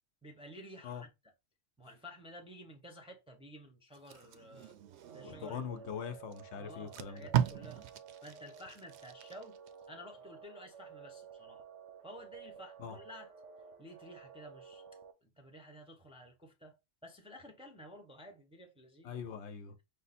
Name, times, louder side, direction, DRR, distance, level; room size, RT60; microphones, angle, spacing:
voice 1, 0.2-1.1 1.8-4.8 5.1-5.9 6.6-7.9 8.2-9.6 9.9-11.6 12.0-13.3 13.8-14.8 15.2-16.8 17.0-19.1, equal, 5° right, 0.6 m, -52 dB
Packing tape duct tape, 3.9-5.6 6.3-6.4 6.7-9.7 10.1-10.4, right 10 dB, 70° right, 0.8 m, -37 dB
sound 1, 5.0-15.1, right 7 dB, 90° right, 1.1 m, -53 dB
voice 2, 5.2-7.3 12.8-13.0 19.0-19.8, left 7 dB, 75° left, 0.9 m, -42 dB
5.2 x 2.1 x 4.1 m
omnidirectional pair, 1.2 m